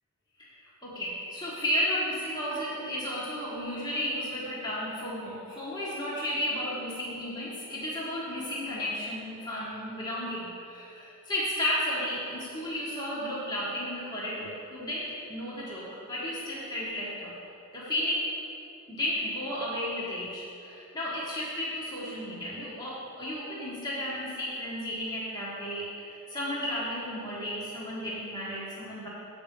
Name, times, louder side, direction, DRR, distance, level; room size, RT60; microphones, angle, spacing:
voice 1, 0.8-17.3 17.7-18.3 18.9-29.1, left 1 dB, 20° left, -7 dB, 1.3 m, -33 dB
7.7 x 5.2 x 6.8 m, 2.7 s
head